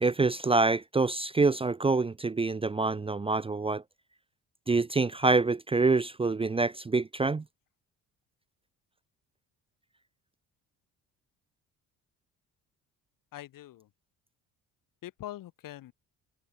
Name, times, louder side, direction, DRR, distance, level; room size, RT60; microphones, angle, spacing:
voice 1, 0.0-3.8 4.7-7.4, right 3 dB, 15° right, 0.6 m, -26 dB
voice 2, 13.3-13.9 15.0-15.9, left 14 dB, 70° left, 4.1 m, -43 dB
cardioid pair, 90°, 34 cm